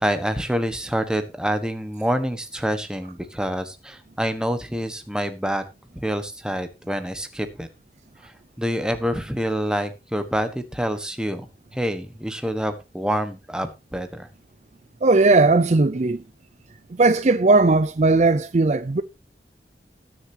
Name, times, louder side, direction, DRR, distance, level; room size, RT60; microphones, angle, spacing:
voice 1, 0.0-5.6 5.9-7.7 8.2-8.3 8.6-14.3, equal, 5° right, 1.3 m, -27 dB
voice 2, 15.0-16.2 16.9-19.0, right 3 dB, 40° right, 0.5 m, -17 dB
20.0 x 6.8 x 2.9 m
head